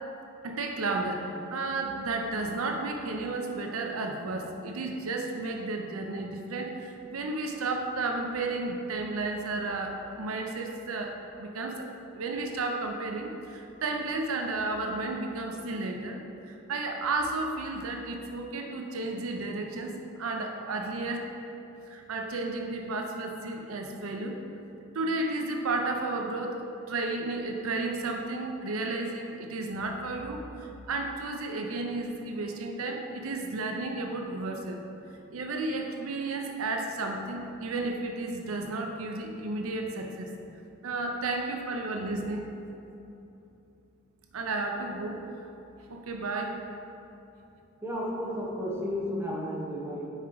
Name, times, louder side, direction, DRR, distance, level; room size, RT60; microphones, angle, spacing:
voice 1, 0.4-11.1 11.4-11.9 12.1-21.3 21.9-24.4 24.9-34.8 35.3-40.3 40.8-42.5 44.3-45.3 45.9-46.5, right 2 dB, 75° right, 3 dB, 0.6 m, -33 dB
voice 2, 47.8-50.1, equal, 10° right, -4 dB, 1.0 m, -33 dB
5.7 x 4.6 x 4.6 m, 2.9 s
head